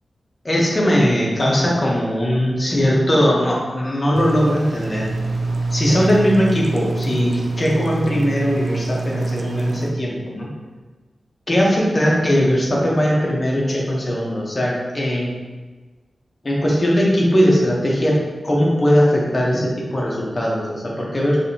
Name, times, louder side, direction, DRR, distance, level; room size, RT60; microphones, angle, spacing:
voice 1, 0.4-5.1 5.7-10.5 11.5-15.3 16.4-18.2 18.4-21.4, equal, 30° left, -4 dB, 0.9 m, -19 dB
sound 1, 4.1-9.9, right 3 dB, 60° right, 0.4 m, -25 dB
4.8 x 3.3 x 2.8 m, 1.3 s
wide cardioid pair, 140°, 0 cm